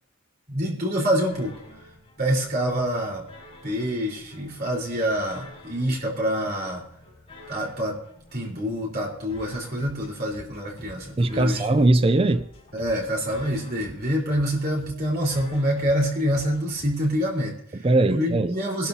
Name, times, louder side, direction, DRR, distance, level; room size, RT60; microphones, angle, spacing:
voice 1, 0.5-1.5 2.2-3.2 3.6-6.8 7.5-8.0 8.3-11.6 12.7-17.6 18.1-18.9, equal, 45° right, -3 dB, 4.2 m, -26 dB
sound 1, 1.3-17.3, left 1 dB, 30° left, 5.4 m, -48 dB
voice 2, 11.2-12.5 17.7-18.5, right 2 dB, 25° right, 11 dB, 0.4 m, -20 dB
22.5 x 12.0 x 2.8 m, 0.70 s
head